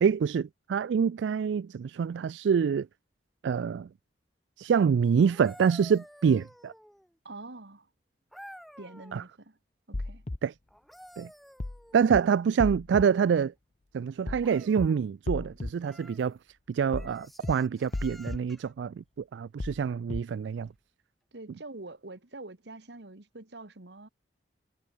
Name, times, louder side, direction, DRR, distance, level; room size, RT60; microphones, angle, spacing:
voice 1, 0.0-2.9 3.4-3.9 4.6-6.7 9.1-9.2 10.4-10.5 11.2-11.3 11.9-13.5 13.9-16.4 16.7-20.7, right 6 dB, 90° right, 0.3 m, -26 dB
sound 1, 5.2-7.2 8.3-9.3 10.7-12.3 14.4-15.0 15.8-16.3 16.9-18.7 20.6-20.8, equal, ahead, 3.5 m, -51 dB
voice 2, 7.3-7.9 8.8-9.6 9.9-10.3 21.3-24.1, right 2 dB, 70° right, 1.7 m, -45 dB
sound 2, 9.9-10.4 11.6-11.8 12.1-12.2 12.6-13.0 14.3-14.5 14.8-14.9 15.3-15.7 16.9-17.1 17.4-17.5 17.9-18.4 19.6-19.8 20.1-20.2, left 2 dB, 40° left, 0.7 m, -34 dB
head